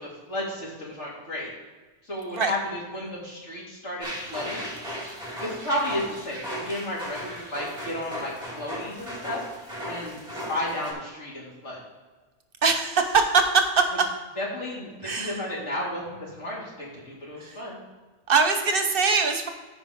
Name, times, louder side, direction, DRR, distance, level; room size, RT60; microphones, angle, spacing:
voice 1, 0.0-1.5 2.0-4.7 5.4-9.4 9.9-11.8 14.4-17.8, left 1 dB, 90° left, -5 dB, 3.1 m, -33 dB
sound 1, 4.0-10.9, equal, 5° right, 2.7 m, -36 dB
voice 2, 12.6-13.8 15.0-15.4 17.4-17.6 18.3-19.5, right 5 dB, 55° right, 6 dB, 1.1 m, -22 dB
15.0 x 5.1 x 3.6 m, 1.3 s
omnidirectional pair, 1.2 m